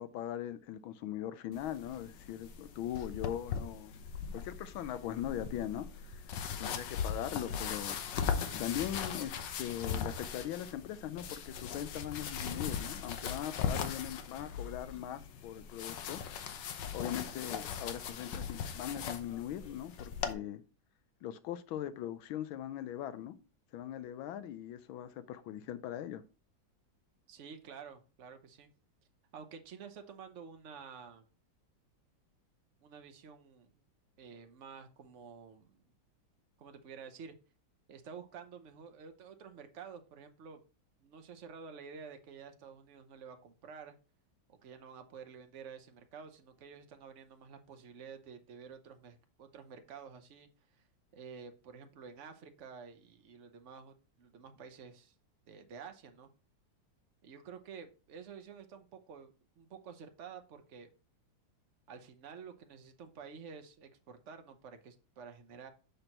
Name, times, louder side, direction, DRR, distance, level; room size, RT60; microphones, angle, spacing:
voice 1, 0.0-4.0 4.3-8.0 8.6-16.2 16.9-20.6 21.2-23.4 23.7-26.2, left 11 dB, 85° left, 1.4 m, -40 dB
sound 1, 1.5-20.3, left 7 dB, 65° left, 1.4 m, -39 dB
voice 2, 27.3-28.7 29.3-31.2 32.8-33.7 34.2-35.8 36.6-37.3 37.9-40.6 41.0-43.9 44.6-50.8 51.1-55.1 55.5-56.3 57.2-60.9 61.9-65.7, right 6 dB, 55° right, 0.9 m, -50 dB
6.6 x 6.0 x 2.9 m
omnidirectional pair, 2.2 m